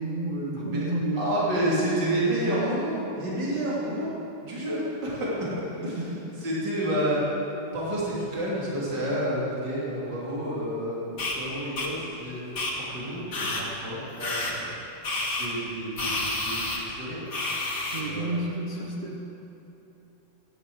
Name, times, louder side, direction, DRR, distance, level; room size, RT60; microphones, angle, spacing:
voice 1, 0.0-2.7 5.8-6.4 17.9-19.2, right 1 dB, 30° right, -4 dB, 1.3 m, -31 dB
voice 2, 1.1-4.1 4.4-6.0 6.4-7.2 7.7-14.7 15.4-16.2 16.4-17.7 18.0-18.4, right 1 dB, 60° right, -6 dB, 3.6 m, -30 dB
sound 1, 11.2-11.4 11.8-11.9 12.6-12.7 13.3-13.6 14.2-14.5 15.0-15.5 16.0-16.8 17.3-18.0, left 2 dB, 55° left, 2.7 m, -29 dB
14.5 x 10.5 x 7.8 m, 2.9 s
omnidirectional pair, 2.1 m